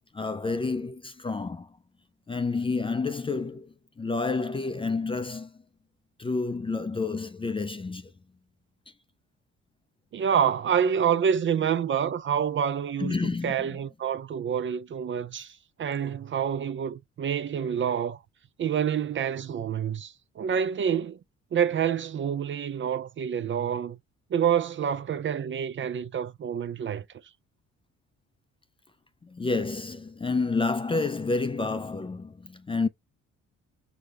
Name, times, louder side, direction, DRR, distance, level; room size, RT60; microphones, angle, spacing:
voice 1, 0.1-1.8 2.3-5.5 6.2-8.1 13.0-13.8 29.2-32.9, left 3 dB, 20° left, 0.4 m, -29 dB
voice 2, 10.1-13.2 13.4-18.2 18.6-21.2 21.5-24.0 24.3-27.0, right 8 dB, 40° right, 0.4 m, -27 dB
4.9 x 2.2 x 3.6 m
cardioid pair, 90°, 30 cm